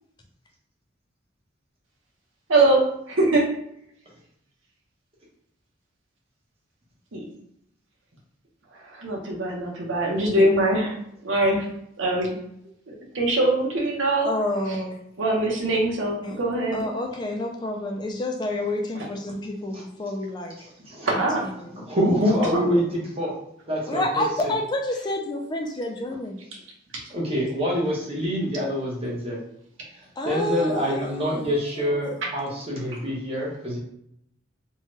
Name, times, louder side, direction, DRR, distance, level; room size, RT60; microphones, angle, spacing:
voice 1, 2.5-2.8 3.1-3.5 7.1-7.3 8.9-11.0 11.2-11.7 12.0-12.4 12.9-14.3 15.2-16.8 21.1-21.5 22.5-22.8, right 2 dB, 85° right, -1 dB, 0.8 m, -22 dB
voice 2, 14.2-15.0 16.2-16.4 16.7-20.6 21.1-21.7 23.9-26.4 30.2-31.3 31.8-32.0 32.4-32.9, left 1 dB, 20° left, 2 dB, 0.3 m, -29 dB
voice 3, 20.6-21.1 21.9-23.3 23.7-24.2 27.1-29.4 30.2-33.8, equal, 30° right, -4 dB, 0.9 m, -25 dB
2.8 x 2.2 x 3.0 m, 0.73 s
head